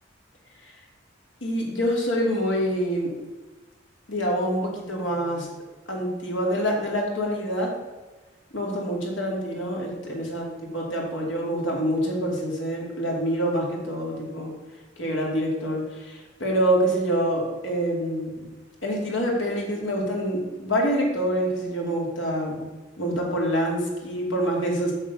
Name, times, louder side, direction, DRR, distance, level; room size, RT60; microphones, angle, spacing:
voice 1, 1.4-3.1 4.1-5.5 5.9-7.8 8.5-14.5 15.0-18.5 18.8-22.7 23.0-24.9, equal, 75° left, -1 dB, 2.4 m, -26 dB
7.2 x 6.7 x 5.4 m, 1.2 s
head